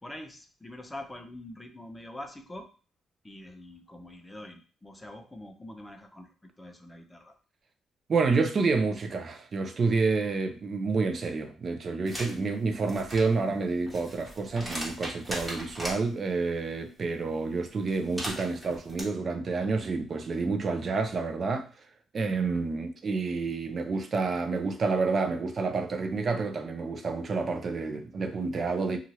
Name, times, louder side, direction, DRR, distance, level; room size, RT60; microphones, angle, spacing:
voice 1, 0.0-2.7 3.2-7.4, left 1 dB, 15° left, 0.6 m, -44 dB
voice 2, 8.1-21.7 22.1-29.0, right 4 dB, 45° right, 0.5 m, -29 dB
sound 1, 12.1-12.3 12.8-16.0 17.9-19.0, equal, 10° right, 1.2 m, -38 dB
2.7 x 2.4 x 3.0 m
cardioid pair, 90°, 0 cm